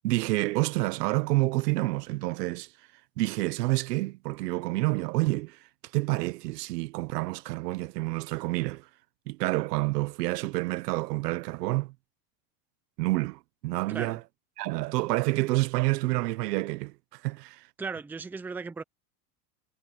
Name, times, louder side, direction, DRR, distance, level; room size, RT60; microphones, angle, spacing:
voice 1, 0.0-2.7 3.2-5.6 5.9-8.9 9.3-11.9 13.0-14.2 14.6-17.6, right 20 dB, 80° right, 1.1 m, -28 dB
voice 2, 13.9-14.2 17.8-18.8, right 4 dB, 5° right, 0.6 m, -36 dB
supercardioid pair, 155°, 47 cm